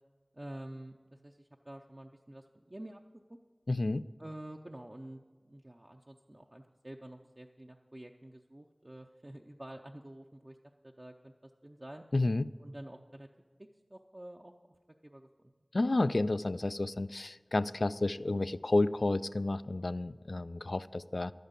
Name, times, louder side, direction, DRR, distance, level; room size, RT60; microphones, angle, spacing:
voice 1, 0.3-3.0 3.3-3.4 4.2-12.0 12.6-13.3 13.6-14.5 15.0-15.3, right 1 dB, 40° right, 2 dB, 0.6 m, -49 dB
voice 2, 3.7-4.0 12.1-12.5 15.7-21.3, left 2 dB, 85° left, 15 dB, 0.3 m, -31 dB
11.0 x 9.2 x 8.2 m, 1.5 s
wide cardioid pair, 45°, 0 cm